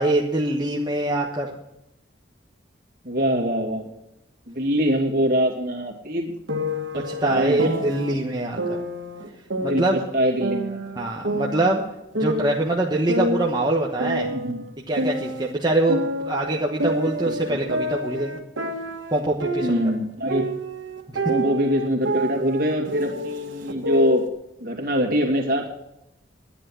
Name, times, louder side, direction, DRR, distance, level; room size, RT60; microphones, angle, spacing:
voice 1, 0.0-1.6 6.9-8.8 9.6-10.0 11.0-11.8 12.1-14.3 14.9-18.4 19.1-19.8, right 2 dB, 20° right, -1 dB, 1.1 m, -24 dB
voice 2, 3.0-3.9 4.5-6.3 6.9-7.8 9.6-10.8 14.2-14.6 17.2-17.6 19.6-20.5 21.3-24.3 24.6-25.7, equal, 50° right, 1 dB, 2.6 m, -24 dB
sound 1, 6.5-8.1 8.6-10.1 10.4-12.7 13.1-15.5 15.9-20.0 20.3-24.3, equal, 85° right, 1.7 m, -28 dB
10.5 x 10.5 x 7.6 m, 0.85 s
head